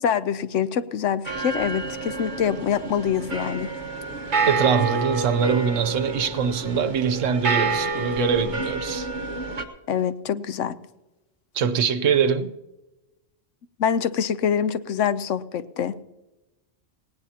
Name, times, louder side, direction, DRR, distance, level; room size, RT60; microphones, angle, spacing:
voice 1, 0.0-3.7 9.9-10.8 13.8-16.0, left 8 dB, 85° left, 1.0 m, -25 dB
sound 1, 1.2-9.6, right 3 dB, 40° right, 1.3 m, -28 dB
voice 2, 4.5-9.1 11.5-12.6, right 7 dB, 90° right, 1.2 m, -23 dB
18.5 x 18.0 x 2.9 m
omnidirectional pair, 1.3 m